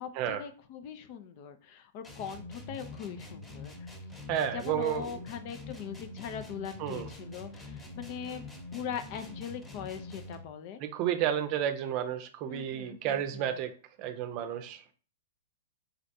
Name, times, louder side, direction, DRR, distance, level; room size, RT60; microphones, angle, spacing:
voice 1, 0.0-4.0 4.5-8.4 8.7-10.8 12.5-13.6, left 8 dB, 50° left, 9 dB, 0.5 m, -41 dB
sound 1, 2.0-10.5, left 2 dB, 15° left, 1.1 m, -45 dB
voice 2, 4.3-5.1 6.8-7.1 10.8-13.7 14.0-14.8, right 10 dB, 45° right, 8 dB, 0.6 m, -31 dB
4.0 x 3.2 x 2.6 m, 0.39 s
hypercardioid pair, 110°, 0 cm